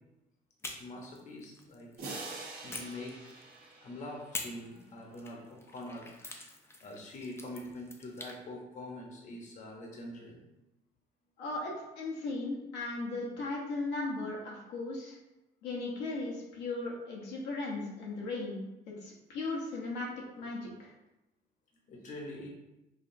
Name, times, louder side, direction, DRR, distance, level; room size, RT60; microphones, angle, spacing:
sound 1, 0.6-2.1 2.7-3.7 4.3-8.4, left 2 dB, 15° left, 0.5 m, -46 dB
voice 1, 0.7-1.9 2.3-3.3 3.8-6.1 6.8-10.4 21.9-22.5, left 1 dB, 45° left, -1 dB, 0.9 m, -44 dB
sound 2, 2.0-4.7, right 3 dB, 65° right, 1.0 m, -45 dB
voice 2, 11.4-15.2 15.6-20.1 20.4-20.9, left 2 dB, 85° left, -2 dB, 0.9 m, -37 dB
4.9 x 2.4 x 2.6 m, 0.94 s
cardioid pair, 110°, 17 cm